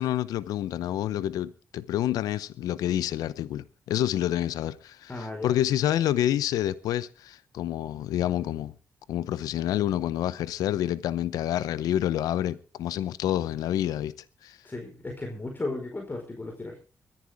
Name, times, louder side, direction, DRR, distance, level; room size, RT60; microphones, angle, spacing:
voice 1, 0.0-8.7 9.1-14.1 14.4-14.6, left 12 dB, 90° left, 0.7 m, -28 dB
voice 2, 5.1-5.5 14.6-16.8, left 2 dB, 30° left, 4.6 m, -35 dB
23.5 x 10.5 x 3.5 m
supercardioid pair, 50°, 6 cm